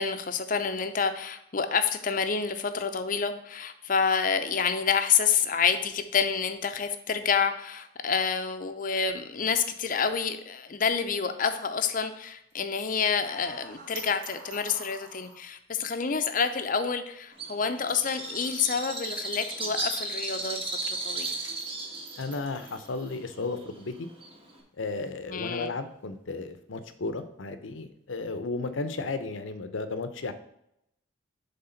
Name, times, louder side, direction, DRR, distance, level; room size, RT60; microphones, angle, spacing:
voice 1, 0.0-21.3 25.3-25.7, left 6 dB, 45° left, 9 dB, 0.6 m, -28 dB
sound 1, 11.9-20.8 21.1-28.3, right 4 dB, 75° right, 1.7 m, -52 dB
sound 2, 13.2-15.4, right 1 dB, 50° right, 1.6 m, -48 dB
Bird, 17.4-24.6, right 2 dB, 30° right, 1.4 m, -35 dB
voice 2, 22.2-24.1 24.8-30.3, left 3 dB, 80° left, 10 dB, 0.7 m, -34 dB
7.7 x 3.6 x 5.7 m, 0.80 s
head